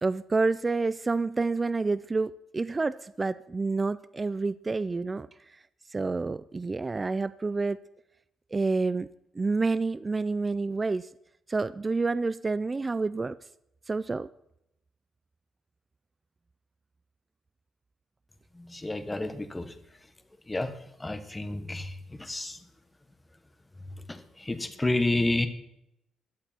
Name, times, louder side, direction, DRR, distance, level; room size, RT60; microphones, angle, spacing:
voice 1, 0.0-5.3 5.9-7.8 8.5-9.1 9.4-11.1 11.5-13.4 13.9-14.3, right 3 dB, 20° right, 0.4 m, -28 dB
voice 2, 18.6-19.7 20.5-20.7 21.0-22.6 24.1-25.5, left 2 dB, 10° left, 1.3 m, -30 dB
17.0 x 11.5 x 4.4 m
cardioid pair, 155°, 0 cm